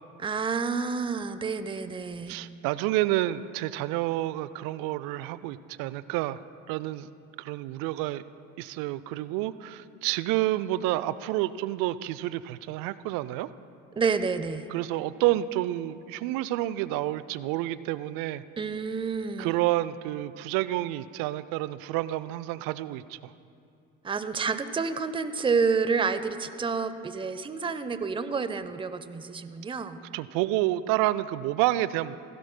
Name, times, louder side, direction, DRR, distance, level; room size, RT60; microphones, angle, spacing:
voice 1, 0.2-2.4 14.0-14.7 18.6-19.6 24.0-30.0, right 5 dB, 15° right, 12 dB, 0.6 m, -29 dB
voice 2, 2.3-6.4 6.7-7.1 7.4-8.2 8.6-13.5 14.7-18.4 19.4-23.3 30.1-32.2, right 15 dB, 60° right, 16 dB, 0.5 m, -29 dB
16.5 x 16.0 x 2.2 m, 2.5 s
hypercardioid pair, 60°, 37 cm